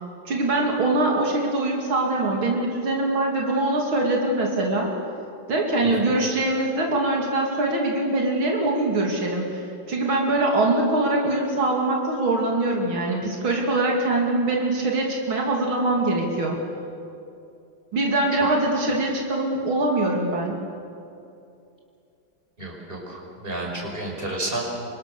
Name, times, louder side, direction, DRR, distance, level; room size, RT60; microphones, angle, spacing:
voice 1, 0.3-4.9 5.5-16.6 17.9-20.6, right 2 dB, 80° right, -1 dB, 3.5 m, -23 dB
voice 2, 22.6-24.7, right 2 dB, 25° right, -1 dB, 5.5 m, -31 dB
29.0 x 24.5 x 6.9 m, 2.6 s
omnidirectional pair, 2.2 m